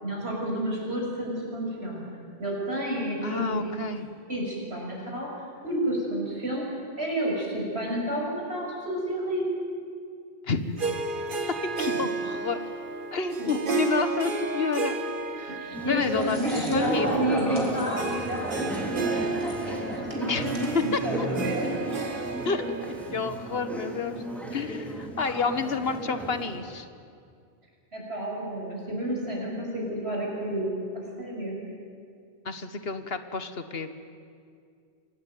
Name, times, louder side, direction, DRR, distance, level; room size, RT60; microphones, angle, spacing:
voice 1, 0.0-2.0 2.4-3.6 4.3-5.3 5.6-6.7 7.0-9.5 13.4-13.5 15.5-21.7 24.5-24.6 27.9-31.6, right 1 dB, 90° right, -2 dB, 6.7 m, -30 dB
voice 2, 3.2-4.0 10.4-10.7 11.6-12.6 13.1-15.0 15.4-17.1 20.3-20.4 20.7-21.3 22.4-24.1 24.5-26.9 32.4-33.9, left 4 dB, 70° left, 10 dB, 1.6 m, -30 dB
Harp, 10.8-24.4, right 4 dB, 55° right, 1.5 m, -33 dB
sound 1, 15.7-26.6, right 1 dB, ahead, 3.0 m, -34 dB
sound 2, 15.7-21.2, right 1 dB, 30° right, 3.7 m, -49 dB
25.5 x 18.5 x 9.3 m, 2.3 s
omnidirectional pair, 1.1 m